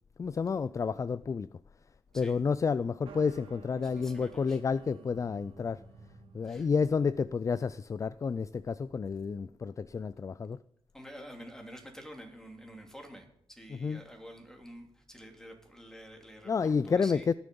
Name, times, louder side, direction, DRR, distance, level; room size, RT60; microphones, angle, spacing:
voice 1, 0.2-1.5 2.1-5.8 6.3-10.6 13.7-14.0 16.5-17.3, left 5 dB, 35° left, 0.4 m, -30 dB
sound 1, 3.1-7.2, right 5 dB, 75° right, 2.9 m, -53 dB
voice 2, 3.8-4.6 6.4-6.7 10.9-17.3, equal, 5° left, 3.0 m, -49 dB
19.5 x 7.0 x 5.4 m
cardioid pair, 75°, 10 cm